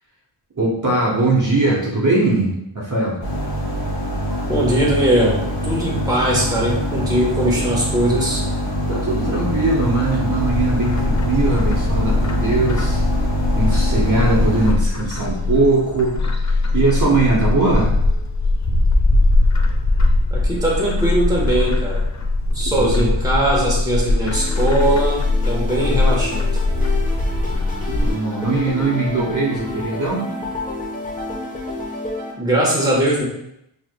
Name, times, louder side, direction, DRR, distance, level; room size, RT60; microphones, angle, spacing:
voice 1, 0.5-3.2 8.9-13.0 13.5-16.2 16.4-17.9 22.8-23.0 27.4-30.3, right 2 dB, 40° right, -5 dB, 1.0 m, -20 dB
sound 1, 3.2-14.7, equal, 55° left, 1.2 m, -23 dB
voice 2, 4.5-8.4 20.3-22.1 22.5-26.5 32.4-33.2, right 1 dB, 10° right, -4 dB, 1.1 m, -20 dB
Bird, 10.4-28.1, left 2 dB, 40° left, 0.5 m, -20 dB
sound 2, 24.3-32.3, left 2 dB, 15° left, 0.9 m, -30 dB
4.6 x 3.1 x 2.2 m, 0.78 s
wide cardioid pair, 60°, 48 cm